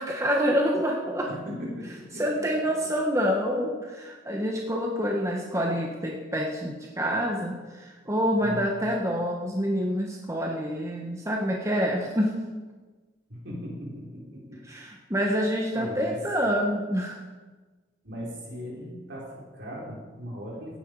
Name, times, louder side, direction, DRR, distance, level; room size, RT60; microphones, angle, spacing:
voice 1, 0.0-1.3 2.1-12.3 14.7-17.2, equal, 15° right, 0 dB, 1.3 m, -27 dB
voice 2, 1.3-2.4 8.4-8.7 13.3-14.6 15.7-16.2 18.0-20.8, equal, 65° right, -4 dB, 5.0 m, -38 dB
16.5 x 10.0 x 4.9 m, 1.3 s
head